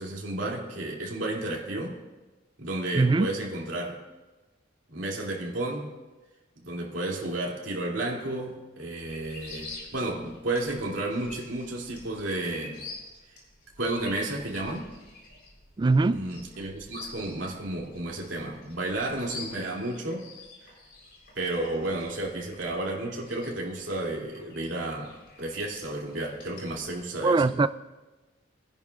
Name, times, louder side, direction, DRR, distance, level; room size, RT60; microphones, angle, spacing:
voice 1, 0.0-2.0 2.6-4.0 4.9-5.9 6.6-12.8 13.8-14.9 16.1-20.3 20.6-20.7 21.3-27.4, right 2 dB, 70° right, -2 dB, 2.7 m, -32 dB
voice 2, 2.9-3.3 15.8-16.2 27.2-27.7, right 3 dB, 25° right, 14 dB, 0.3 m, -21 dB
sound 1, 9.0-27.0, left 3 dB, 55° left, 3.9 m, -48 dB
24.0 x 10.5 x 2.4 m, 1.2 s
head